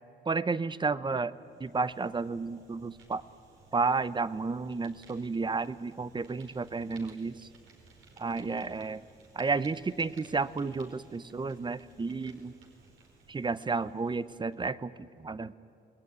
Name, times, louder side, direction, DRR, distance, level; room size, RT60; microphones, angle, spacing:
voice 1, 0.3-1.3 1.6-3.2 3.7-7.5 8.2-9.0 9.3-12.6 13.3-15.6, right 4 dB, 25° right, 16 dB, 0.7 m, -32 dB
Fire, 1.3-14.6, right 4 dB, 80° right, 4.9 m, -58 dB
28.5 x 20.5 x 9.5 m, 2.9 s
cardioid pair, 90°, 20 cm